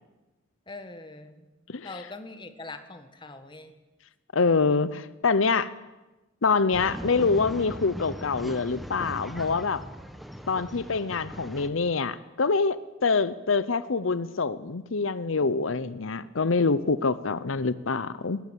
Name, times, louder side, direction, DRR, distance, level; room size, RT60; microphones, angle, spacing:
voice 1, 0.7-1.5 1.8-3.7, left 3 dB, 25° left, 8 dB, 1.6 m, -42 dB
voice 2, 4.3-5.7 6.4-9.8 10.5-12.8 13.0-18.4, left 4 dB, 85° left, 15 dB, 0.8 m, -25 dB
Male speech man speaking / Chatter / Rattle, 6.7-11.7, equal, ahead, 1.3 m, -39 dB
21.0 x 18.0 x 8.3 m, 1.1 s
head